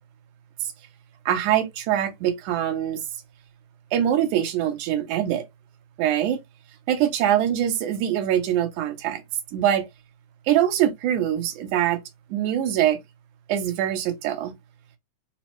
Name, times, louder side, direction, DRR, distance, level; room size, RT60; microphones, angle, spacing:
voice 1, 1.3-3.0 3.9-5.5 6.0-6.4 6.9-9.2 9.5-9.9 10.5-12.0 12.3-13.0 13.5-14.5, right 11 dB, 80° right, 2.2 m, -23 dB
5.2 x 2.0 x 3.0 m
omnidirectional pair, 3.4 m